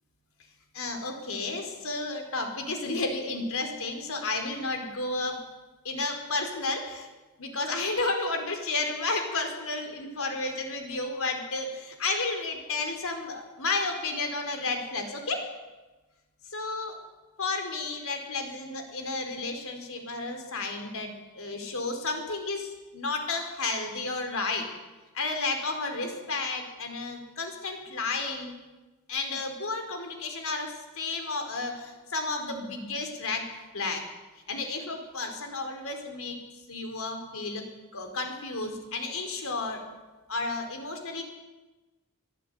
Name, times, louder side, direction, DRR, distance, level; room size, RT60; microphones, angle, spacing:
voice 1, 0.7-5.4 5.8-7.1 7.4-15.5 16.4-17.0 17.4-24.7 25.1-28.6 29.1-34.0 34.5-36.4 36.7-37.6 37.9-39.8 40.3-41.2, left 3 dB, 65° left, 5 dB, 4.6 m, -32 dB
25.5 x 16.0 x 9.5 m, 1.1 s
head